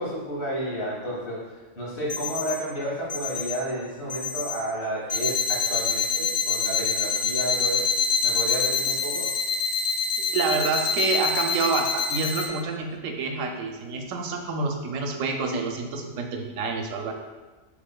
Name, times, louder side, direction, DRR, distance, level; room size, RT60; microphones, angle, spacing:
voice 1, 0.0-1.4 1.8-9.3, equal, 55° left, -6 dB, 1.7 m, -31 dB
sound 1, 2.1-2.5 3.1-3.5 4.1-4.5 5.1-12.4, left 6 dB, 80° left, 1.4 m, -25 dB
voice 2, 10.2-17.1, right 4 dB, 80° right, 3 dB, 1.0 m, -28 dB
6.3 x 3.3 x 2.2 m, 1.2 s
omnidirectional pair, 1.4 m